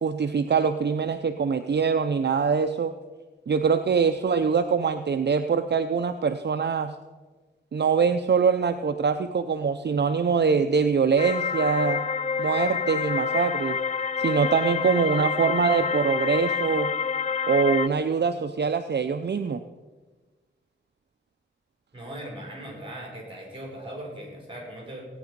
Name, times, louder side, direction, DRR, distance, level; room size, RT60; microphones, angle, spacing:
voice 1, 0.0-2.9 3.5-6.9 7.7-12.0 12.4-13.8 14.2-16.9 17.5-19.6, right 6 dB, 60° right, 8 dB, 0.6 m, -23 dB
sound 1, 11.2-17.9, left 6 dB, 35° left, 0.4 m, -27 dB
voice 2, 21.9-25.1, right 1 dB, 25° right, -2 dB, 5.5 m, -39 dB
17.0 x 9.4 x 5.2 m, 1.3 s
wide cardioid pair, 90°, 20 cm